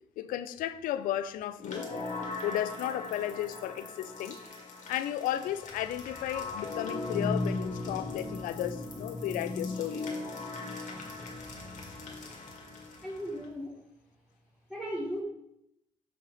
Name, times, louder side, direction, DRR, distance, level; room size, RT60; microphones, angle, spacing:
voice 1, 0.2-1.9 2.4-4.4 4.9-10.1, left 12 dB, 80° left, 0.4 m, -34 dB
sound 1, 1.6-13.5, left 3 dB, 60° left, 1.9 m, -38 dB
voice 2, 13.0-13.8 14.7-15.2, equal, 5° right, 1.5 m, -36 dB
7.0 x 3.6 x 4.9 m
supercardioid pair, 55°, 14 cm